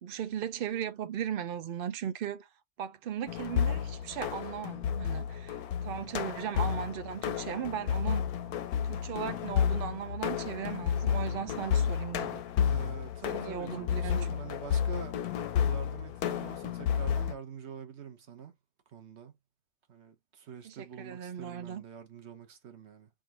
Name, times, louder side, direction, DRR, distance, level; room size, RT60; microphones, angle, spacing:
voice 1, 0.0-2.5 2.8-8.2 8.8-12.4 13.3-14.4 20.6-21.8, right 9 dB, 85° right, 0.5 m, -37 dB
sound 1, 3.3-17.3, left 8 dB, 85° left, 1.1 m, -31 dB
voice 2, 12.6-15.1 15.6-18.5 18.9-19.3 19.9-23.1, right 7 dB, 55° right, 1.1 m, -45 dB
3.6 x 2.5 x 4.5 m
omnidirectional pair, 1.5 m